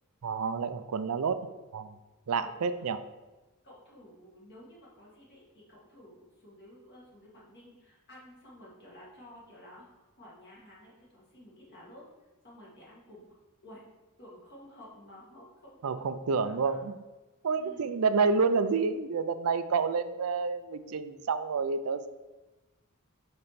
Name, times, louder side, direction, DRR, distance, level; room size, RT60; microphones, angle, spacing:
voice 1, 0.2-1.4 1.7-1.9 2.3-3.0 15.8-16.9 17.4-22.1, right 5 dB, 70° right, 11 dB, 0.4 m, -29 dB
voice 2, 2.3-2.9 3.6-12.0 12.4-13.2 13.6-13.8 14.2-16.1 16.6-16.8 17.5-17.9, left 1 dB, 50° left, -6 dB, 1.9 m, -52 dB
6.8 x 4.4 x 4.2 m, 1.1 s
head